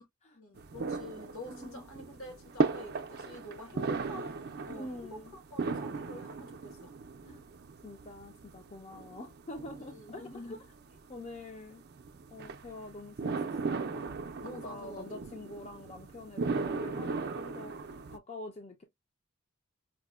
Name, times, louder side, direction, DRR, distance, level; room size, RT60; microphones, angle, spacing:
voice 1, 0.3-6.9 9.8-10.6 14.4-15.4, left 2 dB, 65° left, 1.1 m, -47 dB
sound 1, 0.6-18.2, right 4 dB, 45° right, 0.4 m, -37 dB
voice 2, 1.5-1.8 4.7-5.3 7.3-7.4 7.8-10.6 11.1-11.8 12.3-14.2 14.6-17.7 18.1-18.8, left 2 dB, 30° left, 0.5 m, -46 dB
4.8 x 2.1 x 2.2 m
head